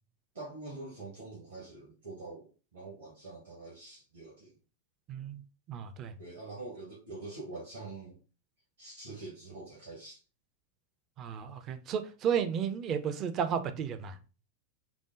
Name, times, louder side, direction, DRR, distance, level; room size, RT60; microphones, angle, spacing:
voice 1, 0.3-4.5 6.2-8.2 8.8-10.2, right 2 dB, 65° right, -2 dB, 1.5 m, -45 dB
voice 2, 5.1-5.4 5.7-6.1 11.2-14.2, right 7 dB, 35° right, 10 dB, 0.6 m, -33 dB
6.0 x 2.2 x 3.7 m, 0.35 s
figure-of-eight pair, 90°, 0 cm